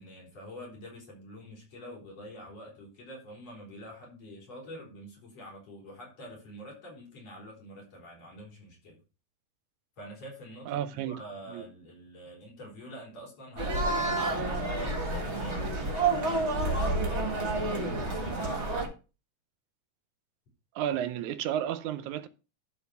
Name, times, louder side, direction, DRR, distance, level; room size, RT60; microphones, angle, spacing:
voice 1, 0.0-9.0 10.0-16.8 17.3-18.9, equal, 60° left, 4.9 m, -46 dB
voice 2, 10.7-11.2 11.5-11.6 20.8-22.3, right 10 dB, 90° right, 2.2 m, -32 dB
sound 1, 13.6-18.9, right 2 dB, 30° right, 1.4 m, -29 dB
11.5 x 4.0 x 5.7 m
omnidirectional pair, 3.3 m